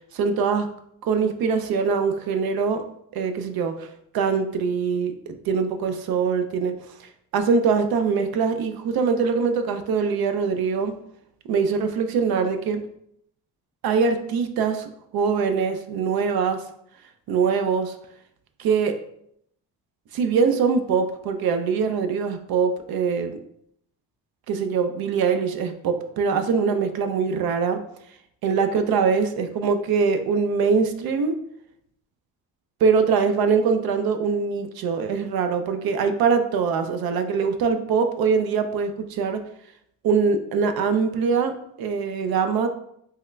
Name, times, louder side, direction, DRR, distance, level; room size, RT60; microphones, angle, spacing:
voice 1, 0.1-0.7 1.0-2.8 3.1-10.9 11.5-12.8 13.8-16.7 17.3-18.0 18.6-19.0 20.1-23.4 24.5-27.8 28.4-31.4 32.8-39.4 40.0-42.7, right 5 dB, 60° right, 8 dB, 0.5 m, -23 dB
3.6 x 2.2 x 3.2 m, 0.72 s
supercardioid pair, 65°, 41 cm